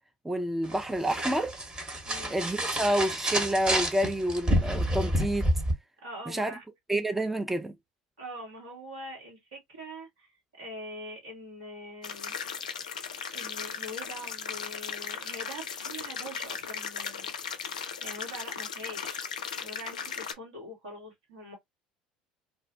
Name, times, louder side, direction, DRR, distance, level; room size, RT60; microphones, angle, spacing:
voice 1, 0.2-1.5 2.3-5.5 6.3-6.5 6.9-7.7, right 1 dB, 5° right, 0.4 m, -28 dB
sound 1, 0.6-5.7, equal, 25° right, 1.0 m, -29 dB
voice 2, 2.0-2.4 6.0-6.6 8.2-12.4 12.9-17.3 17.7-19.3 19.6-21.6, equal, 75° right, 1.4 m, -43 dB
sound 2, 12.0-20.3, left 7 dB, 80° left, 0.3 m, -37 dB
2.5 x 2.0 x 2.5 m
figure-of-eight pair, 65°, 4 cm